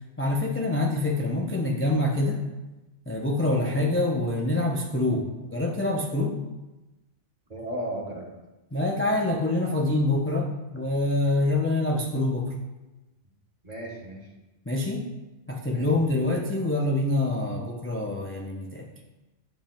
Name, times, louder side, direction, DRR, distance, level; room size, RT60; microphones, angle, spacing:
voice 1, 0.2-2.4 3.1-6.4 8.7-12.5 14.7-15.1 15.5-18.9, left 2 dB, 15° left, -1 dB, 0.4 m, -26 dB
voice 2, 7.5-8.3 13.6-14.3 15.7-16.1, right 1 dB, 40° right, -1 dB, 1.3 m, -35 dB
10.0 x 5.3 x 2.2 m, 1.1 s
omnidirectional pair, 1.1 m